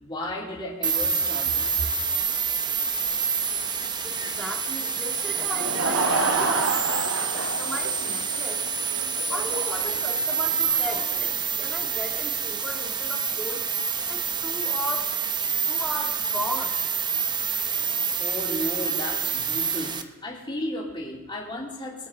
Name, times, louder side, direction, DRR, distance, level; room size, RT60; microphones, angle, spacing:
voice 1, 0.0-1.9 3.1-3.2 18.2-22.1, left 1 dB, 25° left, -4 dB, 3.2 m, -34 dB
sound 1, 0.8-20.0, right 6 dB, 20° right, 0.7 m, -27 dB
voice 2, 4.0-8.6 9.3-11.3 11.6-13.6 14.1-15.1 15.7-16.8, equal, 5° left, -1 dB, 2.2 m, -36 dB
Laughter / Crowd, 5.3-12.2, right 3 dB, 75° right, 1.3 m, -30 dB
23.0 x 9.1 x 3.7 m, 1.4 s
head